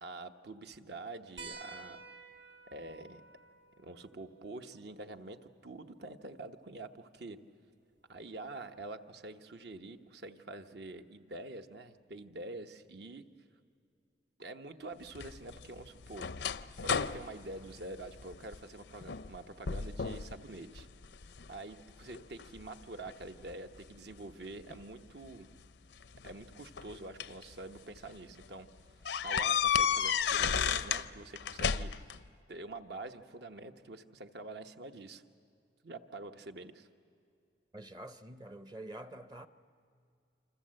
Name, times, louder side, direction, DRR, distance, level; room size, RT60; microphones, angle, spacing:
voice 1, 0.0-2.0 2.6-3.2 3.8-7.4 8.1-13.3 14.4-16.3 16.8-20.9 21.5-25.5 26.2-28.7 29.2-31.9 32.5-35.2 35.8-36.9, right 2 dB, 65° right, 1.1 m, -46 dB
sound 1, 1.4-6.4 8.0-8.1 9.7-9.8, right 4 dB, 90° right, 2.2 m, -53 dB
sound 2, 15.2-18.6 19.0-19.4 19.7-20.3 20.8-21.5 22.1-23.5 24.7-24.8 26.0-27.4 28.0-28.1 28.4-28.5 29.1-31.1 31.4-32.2, left 7 dB, 70° left, 0.6 m, -33 dB
voice 2, 37.7-39.5, right 1 dB, 20° right, 0.6 m, -47 dB
28.0 x 26.0 x 7.7 m
head